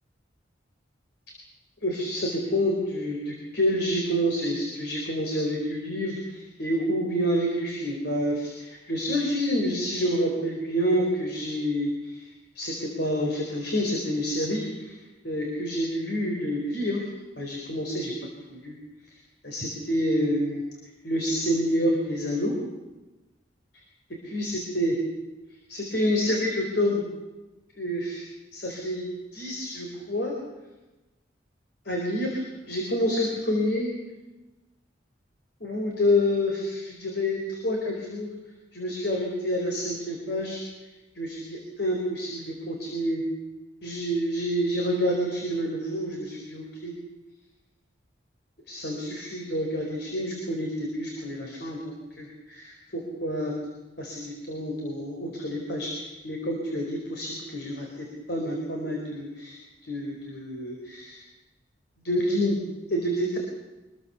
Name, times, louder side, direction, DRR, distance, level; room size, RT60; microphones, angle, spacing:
voice 1, 1.8-12.2 12.5-15.0 15.2-17.0 17.4-18.1 18.5-18.7 19.4-20.6 21.0-22.5 24.3-24.9 25.7-27.0 27.8-28.3 28.5-29.1 29.3-30.3 31.9-32.4 32.7-33.9 35.6-38.3 38.7-40.6 41.2-43.2 43.8-46.9 48.7-53.5 54.0-57.9 58.3-59.6 59.8-61.2 62.0-62.6 62.9-63.4, equal, 60° left, 0 dB, 4.4 m, -28 dB
25.5 x 21.0 x 7.1 m, 1.1 s
head